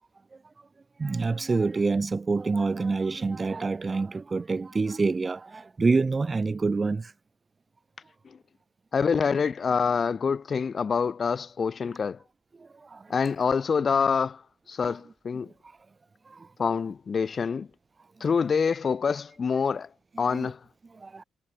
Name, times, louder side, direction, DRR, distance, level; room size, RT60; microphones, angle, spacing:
voice 1, 1.0-7.1 12.6-13.1 14.9-15.0 16.3-16.5 20.2-20.5 21.0-21.2, right 4 dB, 30° right, 1.0 m, -27 dB
voice 2, 8.9-12.2 13.1-14.4 14.7-15.5 16.6-17.7 18.2-19.9 20.2-20.6, left 5 dB, 40° left, 0.4 m, -26 dB
cardioid pair, 90°, 0 cm